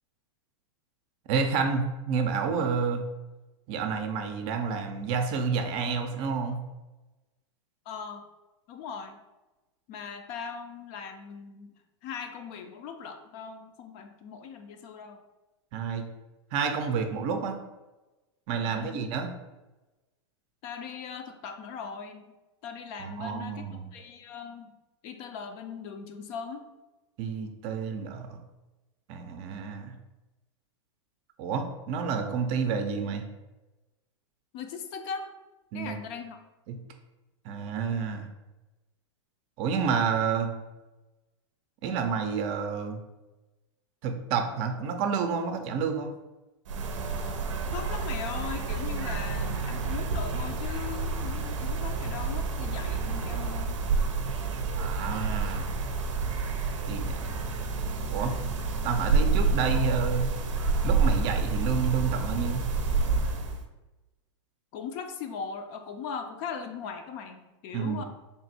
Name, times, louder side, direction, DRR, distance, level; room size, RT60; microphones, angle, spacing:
voice 1, 1.3-3.1 3.7-6.6 15.7-16.1 16.5-17.6 18.5-19.3 23.0-23.9 27.2-28.4 29.1-29.9 31.4-33.2 35.7-36.0 36.7-36.8 37.4-38.3 39.6-40.5 41.8-43.0 44.0-46.1 54.8-55.7 56.9-57.4 58.1-58.3 58.8-60.3 60.8-62.6 67.7-68.0, right 5 dB, 40° right, 6 dB, 0.5 m, -29 dB
voice 2, 7.9-8.2 8.7-9.2 9.9-11.7 12.0-15.2 18.6-19.1 20.6-22.3 22.6-23.6 23.9-24.7 25.0-26.6 34.5-35.3 35.7-36.4 47.7-53.8 64.7-68.0, left 6 dB, 40° left, 6 dB, 0.4 m, -39 dB
sound 1, 46.7-63.6, right 4 dB, 85° right, 0.6 m, -29 dB
3.5 x 2.5 x 4.1 m, 1.1 s
hypercardioid pair, 135°, 16 cm